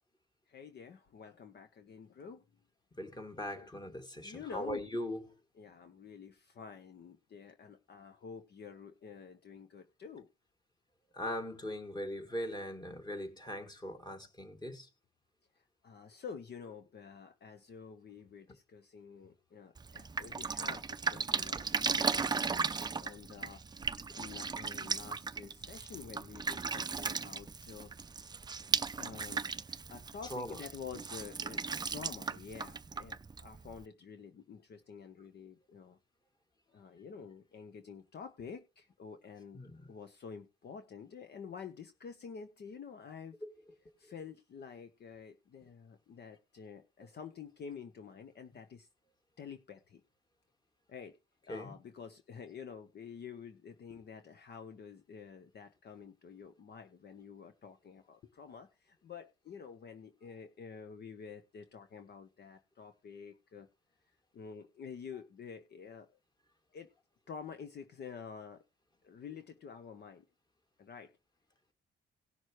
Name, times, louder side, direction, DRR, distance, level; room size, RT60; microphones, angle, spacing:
voice 1, 0.5-2.4 3.5-3.7 4.1-4.8 5.5-10.3 15.8-23.6 23.9-27.9 29.0-29.4 29.9-36.0 36.7-39.6 39.9-43.4 44.0-48.9 49.4-50.0 50.9-51.2 51.4-63.7 64.3-66.1 66.7-66.9 67.3-68.6 69.0-70.2 70.8-71.1, left 6 dB, 55° left, 1.0 m, -49 dB
voice 2, 3.0-5.2 11.1-14.9 30.3-30.6 39.5-39.7 43.4-43.5 51.5-51.7, equal, 20° left, 2.3 m, -40 dB
Drip, 19.8-33.8, right 5 dB, 20° right, 0.5 m, -36 dB
18.0 x 6.2 x 3.1 m
cardioid pair, 90°, 20 cm